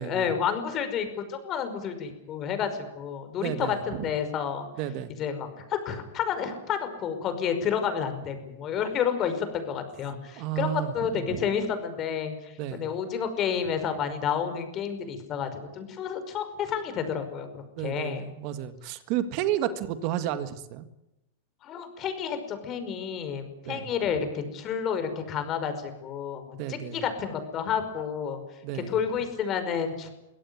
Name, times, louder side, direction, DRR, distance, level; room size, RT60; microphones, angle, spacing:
voice 1, 0.0-4.7 5.2-18.3 21.6-28.4 28.7-30.1, left 7 dB, 30° left, 8 dB, 5.3 m, -30 dB
voice 2, 3.4-4.0 4.8-5.1 10.4-11.4 12.6-12.8 17.8-20.9 23.7-23.9 26.6-27.0 28.6-28.9, right 11 dB, 45° right, 11 dB, 1.8 m, -32 dB
23.5 x 17.0 x 9.8 m, 0.94 s
hypercardioid pair, 135°, 0 cm